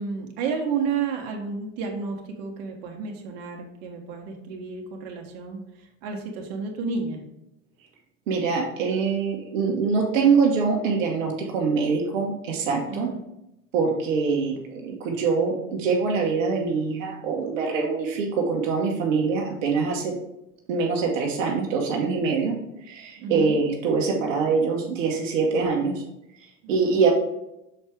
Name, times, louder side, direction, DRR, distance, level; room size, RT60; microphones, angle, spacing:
voice 1, 0.0-7.2 12.9-13.2 23.2-23.6 26.6-27.0, right 5 dB, 60° right, 2 dB, 1.3 m, -31 dB
voice 2, 8.3-13.1 13.7-20.1 20.7-22.6 22.8-26.0 26.7-27.1, right 5 dB, 80° right, 0 dB, 1.2 m, -24 dB
6.4 x 4.4 x 3.6 m, 0.86 s
hypercardioid pair, 90°, 38 cm